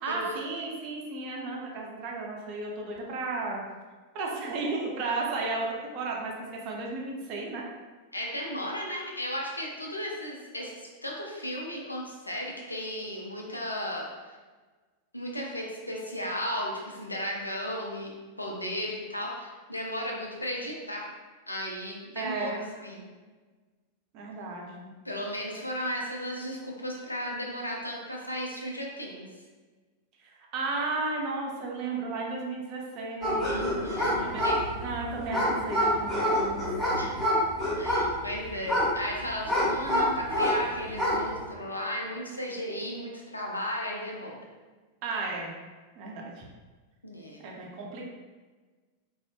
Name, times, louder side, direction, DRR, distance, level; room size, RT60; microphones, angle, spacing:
voice 1, 0.0-3.6 4.1-6.3 6.6-7.6 22.2-22.6 24.1-24.9 30.5-33.8 34.2-34.4 34.8-36.7 45.0-45.5 46.0-46.5 47.4-48.1, right 3 dB, 40° right, -2 dB, 0.5 m, -34 dB
voice 2, 8.1-14.4 15.1-21.1 21.5-23.0 25.0-29.3 33.4-34.6 36.9-37.1 37.8-44.4 47.0-47.4, equal, 85° left, -1 dB, 0.4 m, -35 dB
sound 1, 33.2-40.6 40.9-41.3, equal, 10° left, 0.8 m, -27 dB
2.6 x 2.0 x 2.4 m, 1.3 s
figure-of-eight pair, 90°, 0 cm